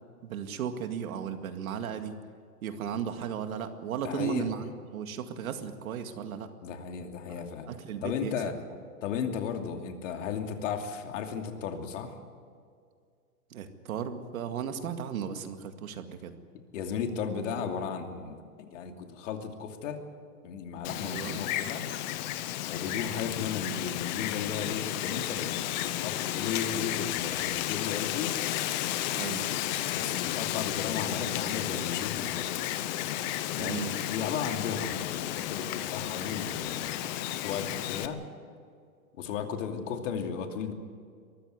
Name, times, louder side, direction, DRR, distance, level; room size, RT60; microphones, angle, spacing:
voice 1, 0.2-2.2 2.6-6.5 7.3-8.5 13.5-16.4 21.0-21.4 29.1-29.5 33.6-34.0, right 7 dB, 65° right, 7 dB, 2.1 m, -35 dB
voice 2, 4.0-4.5 6.6-7.7 8.0-8.5 9.0-12.2 16.7-20.0 20.4-21.8 22.7-28.4 29.9-32.5 33.5-33.8 34.1-38.2 39.2-40.7, left 6 dB, 55° left, 4 dB, 2.8 m, -35 dB
Wind, 20.8-38.1, left 13 dB, 30° left, 0.8 m, -33 dB
23.0 x 14.5 x 9.5 m, 2.1 s
hypercardioid pair, 150°, 46 cm